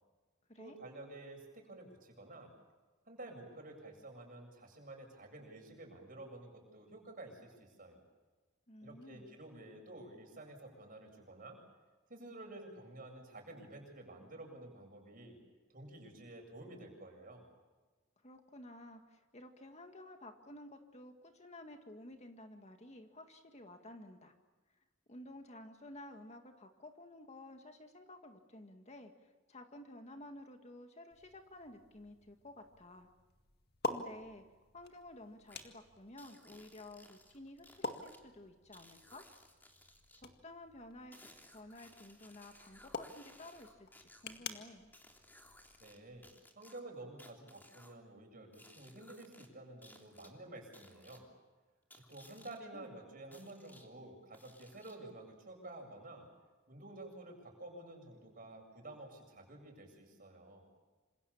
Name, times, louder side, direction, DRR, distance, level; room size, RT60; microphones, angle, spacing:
voice 1, 0.6-2.5 3.1-8.0 8.8-11.6 12.1-15.4 15.7-17.5 45.8-51.3 51.9-56.3 56.7-60.7, right 2 dB, 45° right, 2 dB, 7.9 m, -51 dB
voice 2, 8.7-9.4 18.2-24.3 25.1-33.1 33.9-34.4 34.7-39.3 40.2-44.9 52.7-52.9, left 1 dB, 35° left, 5 dB, 2.0 m, -53 dB
sound 1, 31.1-46.3, left 2 dB, 55° left, 2.0 m, -48 dB
sound 2, 35.5-35.7 36.2-38.2 38.7-40.2 41.1-44.4 44.9-46.0 46.2-48.0 48.5-49.5 49.8-50.3 50.7-51.2 51.9-52.6 53.3-53.9 54.3-55.1, left 1 dB, 10° left, 3.2 m, -60 dB
27.5 x 27.0 x 7.3 m, 1.3 s
head